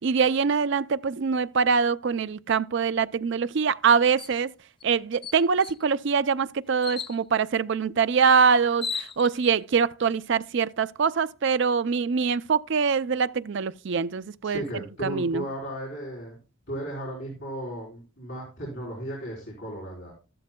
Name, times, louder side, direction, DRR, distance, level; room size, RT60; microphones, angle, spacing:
voice 1, 0.0-4.5 4.8-14.6 15.0-15.4, right 6 dB, 55° right, 0.4 m, -24 dB
sound 1, 4.2-4.4 4.8-4.9 5.2-5.8 6.8-7.2 8.3-8.4 8.7-9.5, left 6 dB, 25° left, 0.4 m, -35 dB
voice 2, 14.4-16.4 16.7-20.1, equal, 55° left, 4.0 m, -35 dB
13.5 x 12.0 x 2.2 m
head